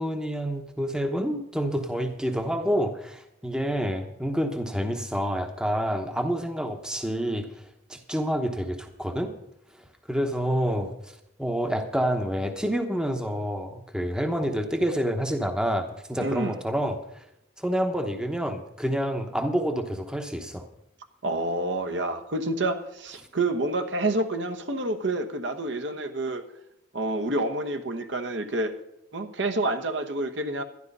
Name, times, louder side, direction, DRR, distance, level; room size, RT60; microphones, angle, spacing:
voice 1, 0.0-7.5 7.9-9.3 10.1-17.2 17.6-20.6, equal, 5° right, 6 dB, 0.9 m, -28 dB
voice 2, 16.2-16.6 21.2-26.4 26.9-28.7 29.1-30.6, right 2 dB, 65° right, 6 dB, 1.1 m, -28 dB
12.0 x 11.0 x 5.4 m, 0.80 s
head